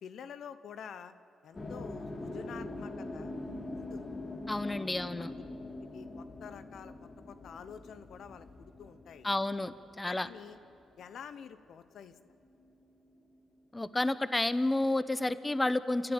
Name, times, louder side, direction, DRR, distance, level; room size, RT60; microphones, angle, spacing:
voice 1, 0.0-1.1 1.4-3.3 3.7-4.1 4.6-4.8 5.3-5.4 5.8-9.3 10.0-10.6 11.0-12.1, left 7 dB, 70° left, 12 dB, 0.9 m, -48 dB
sound 1, 1.5-11.7 11.9-13.6, left 2 dB, 35° left, 2.8 m, -44 dB
voice 2, 4.5-5.3 9.2-10.3 13.7-16.1, left 2 dB, 20° left, 14 dB, 1.0 m, -30 dB
29.0 x 12.0 x 8.9 m, 2.5 s
supercardioid pair, 50°, 0 cm